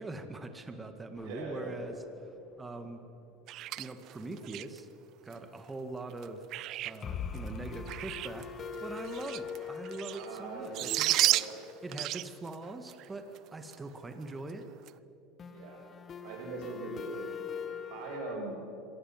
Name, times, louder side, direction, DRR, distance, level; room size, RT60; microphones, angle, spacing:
voice 1, 0.0-3.0 3.8-4.9 5.2-6.4 6.8-8.5 8.8-11.3 11.8-14.7, right 2 dB, 20° right, 7 dB, 2.0 m, -42 dB
sound 1, 1.2-2.4 2.7-2.8 3.0-3.1 7.0-12.7 15.4-18.4, left 6 dB, 35° left, 1.6 m, -43 dB
voice 2, 1.2-1.9 10.1-10.9 11.2-11.6 15.5-15.8 16.2-17.5 17.9-18.6, right 3 dB, 70° right, 0 dB, 7.4 m, -41 dB
sound 2, 3.5-4.8 5.3-5.4 6.1-7.0 7.3-8.4 8.7-10.4 10.6-13.1 13.3-13.4 13.7-13.8 14.3-14.5 14.9-15.0, right 15 dB, 55° right, 0.6 m, -33 dB
26.0 x 18.5 x 7.5 m, 2.9 s
supercardioid pair, 95°, 0 cm